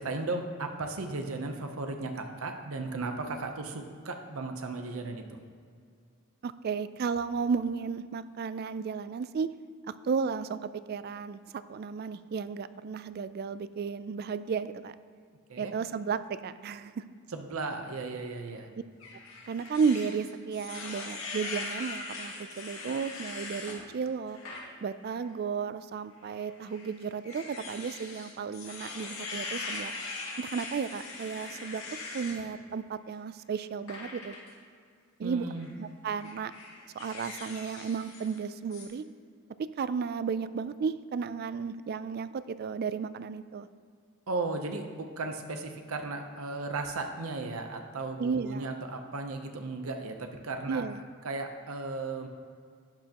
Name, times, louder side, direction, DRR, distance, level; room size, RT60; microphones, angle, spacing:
voice 1, 0.0-5.4 15.5-15.7 17.3-18.7 35.2-35.7 44.3-50.8 51.2-52.3, right 3 dB, 90° right, 5 dB, 0.8 m, -35 dB
voice 2, 6.4-9.5 9.9-11.4 11.7-14.9 15.6-17.0 19.5-24.4 24.8-29.9 30.4-31.8 32.1-34.4 35.2-35.5 35.8-36.5 36.9-39.0 39.8-43.7 48.2-48.7 50.7-51.0, right 5 dB, 45° right, 14 dB, 0.3 m, -33 dB
sound 1, 19.0-23.8 24.3-24.6 25.1-25.2 26.2-32.4 33.9-34.5 35.5-35.7 36.2-38.4 38.7-38.9, left 3 dB, 80° left, 2.1 m, -41 dB
11.5 x 8.9 x 2.9 m, 2.2 s
head